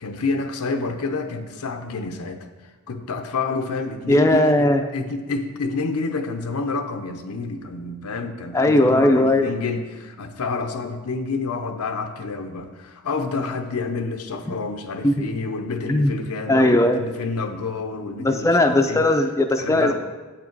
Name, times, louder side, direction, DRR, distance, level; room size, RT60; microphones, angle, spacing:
voice 1, 0.0-2.5 2.9-4.5 4.9-19.0 19.6-19.9, left 3 dB, 85° left, 7 dB, 0.7 m, -28 dB
voice 2, 4.1-4.8 8.5-9.5 15.0-15.2 15.9-16.2 16.5-17.0 18.2-19.9, left 1 dB, 15° left, 5 dB, 0.4 m, -18 dB
8.4 x 5.9 x 4.6 m, 1.3 s
head